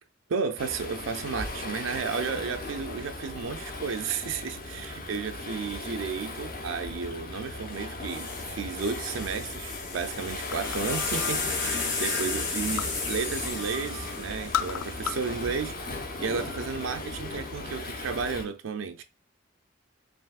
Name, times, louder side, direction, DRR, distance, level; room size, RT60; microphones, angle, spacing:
voice 1, 0.3-15.8 16.2-19.0, right 5 dB, 70° right, 0.4 m, -33 dB
Waves surf, 0.6-18.4, left 2 dB, 45° left, 1.0 m, -37 dB
sound 1, 7.7-7.8 8.1-15.5 16.4-16.8, left 4 dB, 60° left, 1.4 m, -34 dB
sound 2, 10.5-11.0 11.4-13.1 13.4-14.0 14.3-15.4 15.7-16.5, left 8 dB, 90° left, 0.4 m, -34 dB
5.3 x 3.0 x 2.4 m
head